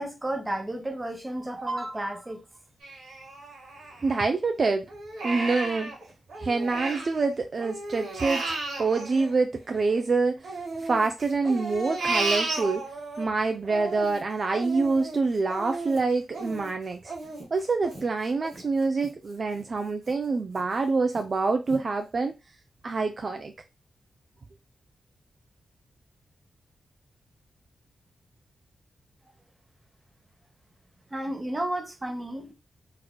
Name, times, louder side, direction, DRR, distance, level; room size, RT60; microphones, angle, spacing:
voice 1, 0.0-2.4 31.1-32.5, right 1 dB, 20° right, 0.9 m, -32 dB
Crying sobbing, 2.8-4.5 4.9-7.3 7.6-10.0 10.4-13.2 13.6-19.1 19.5-19.6 20.1-20.6 21.1-21.2 21.7-21.8, right 3 dB, 85° right, 1.9 m, -34 dB
voice 2, 4.0-4.9 5.2-5.9 6.4-8.5 8.8-10.5 10.8-12.8 13.2-17.1 17.5-22.3 22.8-23.5, right 3 dB, 55° right, 0.4 m, -26 dB
3.9 x 2.8 x 2.2 m
cardioid pair, 60°, 0 cm